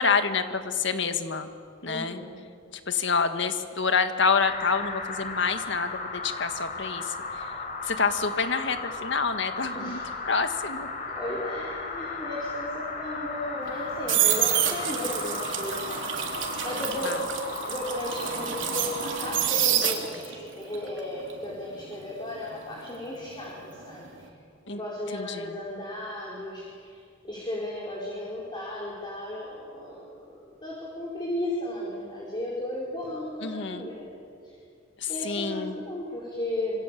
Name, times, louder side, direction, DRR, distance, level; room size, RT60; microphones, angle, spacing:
voice 1, 0.0-1.5 1.8-2.2 2.7-7.5 7.8-10.0 10.3-10.9 14.3-14.4 17.0-17.2 24.7-24.8 25.1-25.5 33.4-33.9 35.0-35.8, left 5 dB, 70° left, 8 dB, 1.8 m, -27 dB
voice 2, 1.9-2.4 9.7-10.2 11.2-17.2 17.6-24.3 24.7-27.0 27.2-30.0 30.3-34.1 34.4-34.6 35.1-36.8, left 1 dB, 25° left, -5 dB, 5.2 m, -35 dB
sound 1, 4.4-19.5, left 3 dB, 45° left, 4.3 m, -35 dB
sound 2, 13.6-20.4 20.7-23.6 23.9-24.2, right 10 dB, 80° right, 3.5 m, -28 dB
26.5 x 26.0 x 8.6 m, 2.3 s
head